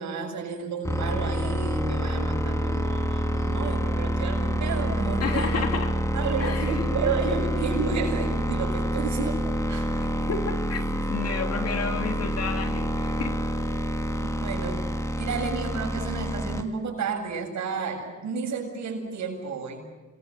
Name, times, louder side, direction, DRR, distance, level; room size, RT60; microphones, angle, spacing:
voice 1, 0.0-5.7 6.1-10.1 14.2-14.8 15.2-19.8, right 5 dB, 65° right, 2 dB, 7.6 m, -31 dB
sound 1, 0.8-16.6, equal, 10° left, 2.4 m, -27 dB
voice 2, 5.2-5.9 6.4-6.8 10.3-13.4, left 5 dB, 55° left, 5 dB, 3.2 m, -31 dB
28.0 x 21.5 x 7.8 m, 1.3 s
cardioid pair, 90°, 30 cm